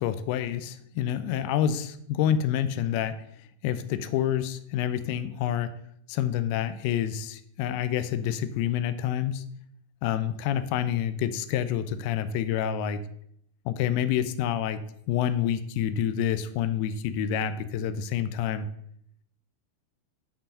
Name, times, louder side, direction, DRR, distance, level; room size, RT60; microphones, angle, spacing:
voice 1, 0.0-3.1 3.6-5.7 6.1-9.4 10.0-13.0 13.6-14.8 15.1-18.7, left 10 dB, 45° left, 13 dB, 0.6 m, -28 dB
6.9 x 5.5 x 7.0 m, 0.70 s
figure-of-eight pair, 90°, 0 cm